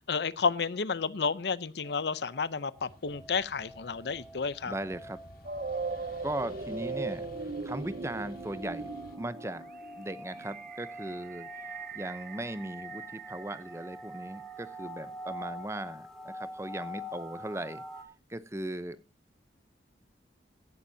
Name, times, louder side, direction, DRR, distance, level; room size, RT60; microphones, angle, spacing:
voice 1, 0.1-4.7, left 5 dB, 75° left, 0.6 m, -31 dB
sound 1, 1.8-18.0, left 1 dB, 5° left, 2.5 m, -46 dB
sound 2, 2.8-9.2, left 1 dB, 55° left, 1.9 m, -52 dB
voice 2, 4.7-5.2 6.2-8.9 9.2-9.6 10.0-17.8 18.3-19.0, right 1 dB, 15° right, 0.7 m, -38 dB
sound 3, 5.4-14.4, right 4 dB, 50° right, 0.7 m, -40 dB
16.5 x 11.0 x 2.7 m
head